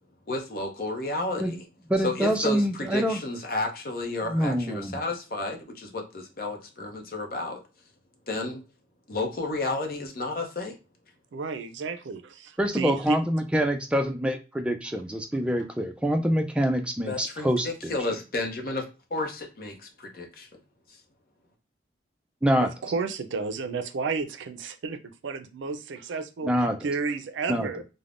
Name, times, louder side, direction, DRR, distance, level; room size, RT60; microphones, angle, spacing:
voice 1, 0.3-1.6 2.0-7.6 8.3-8.6 9.1-10.8 17.1-18.8 19.1-20.5 20.9-21.0, left 2 dB, 50° left, 3 dB, 0.6 m, -32 dB
voice 2, 1.9-3.2 4.3-5.0 12.6-17.9 22.4-22.7 26.5-26.8 27.5-27.7, equal, 5° right, 5 dB, 0.3 m, -25 dB
voice 3, 11.3-13.2 22.6-25.0 25.2-26.5 26.8-27.8, right 4 dB, 90° right, 9 dB, 0.4 m, -32 dB
3.3 x 2.1 x 2.4 m, 0.31 s
head